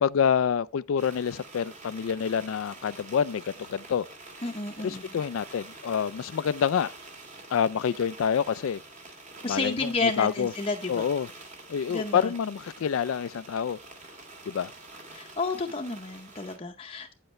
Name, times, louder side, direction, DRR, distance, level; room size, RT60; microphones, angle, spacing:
voice 1, 0.0-3.4 3.7-4.1 4.8-6.9 7.5-8.8 9.4-10.5 10.9-11.3 11.7-13.8 14.5-14.7, left 7 dB, 90° left, 0.4 m, -27 dB
sound 1, 1.0-16.6, right 2 dB, 35° right, 2.2 m, -47 dB
voice 2, 4.4-5.0 9.4-11.1 11.9-12.3 15.1-17.1, left 3 dB, 30° left, 0.7 m, -31 dB
9.0 x 7.9 x 3.1 m
head